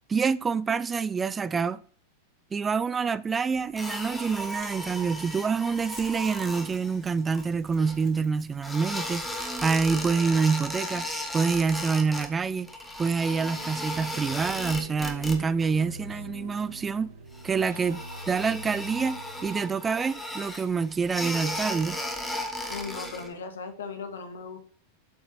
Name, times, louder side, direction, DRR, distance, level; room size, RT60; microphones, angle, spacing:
voice 1, 0.1-1.8 2.5-11.1 11.3-12.7 13.0-17.1 17.4-22.0, right 5 dB, 15° right, 0.4 m, -27 dB
sound 1, 3.8-8.2 8.6-12.3 12.5-15.7 16.0-16.4 16.8-16.9 17.3-23.3, left 1 dB, 5° left, 1.6 m, -36 dB
Mechanisms, 4.3-11.5, left 3 dB, 35° left, 4.5 m, -56 dB
sound 2, 13.4-19.8, right 1 dB, 75° right, 1.3 m, -44 dB
voice 2, 22.7-24.6, left 5 dB, 65° left, 1.7 m, -37 dB
7.9 x 7.1 x 4.2 m
figure-of-eight pair, 90°, 0 cm